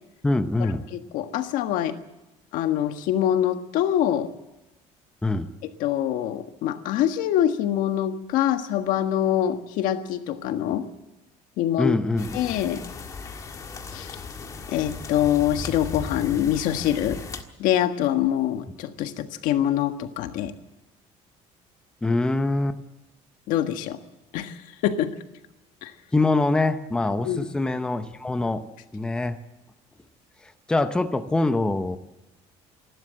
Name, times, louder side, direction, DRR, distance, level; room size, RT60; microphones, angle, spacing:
voice 1, 0.2-0.8 5.2-5.5 11.8-12.3 22.0-22.8 26.1-28.6 28.9-29.4 30.7-32.0, left 2 dB, 5° left, 9 dB, 0.7 m, -24 dB
voice 2, 0.9-2.0 2.5-4.3 5.8-10.9 11.6-12.0 12.3-12.8 13.9-14.1 14.7-17.2 17.6-20.5 23.5-24.0 24.3-24.6 24.8-25.1 25.8-25.9 27.2-27.5, left 11 dB, 80° left, 8 dB, 1.6 m, -24 dB
sound 1, 12.2-17.4, left 4 dB, 25° left, 1.6 m, -37 dB
27.5 x 12.5 x 7.7 m, 0.98 s
cardioid pair, 180°, 13 cm